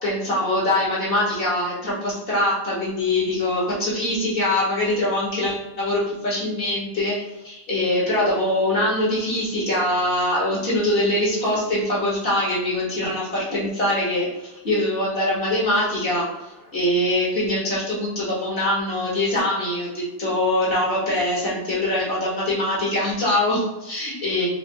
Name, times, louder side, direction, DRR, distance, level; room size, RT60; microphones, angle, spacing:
voice 1, 0.0-7.2 7.4-24.5, left 1 dB, 50° left, -6 dB, 1.7 m, -23 dB
5.0 x 2.8 x 2.9 m, 0.95 s
omnidirectional pair, 1.2 m